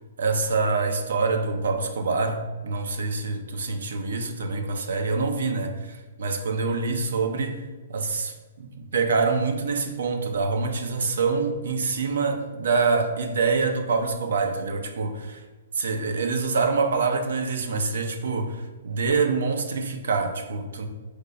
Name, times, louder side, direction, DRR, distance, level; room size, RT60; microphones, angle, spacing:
voice 1, 0.2-7.6 7.9-15.4 15.7-20.9, right 4 dB, 80° right, 6 dB, 0.6 m, -26 dB
4.9 x 4.1 x 2.2 m, 1.3 s
hypercardioid pair, 145°, 0 cm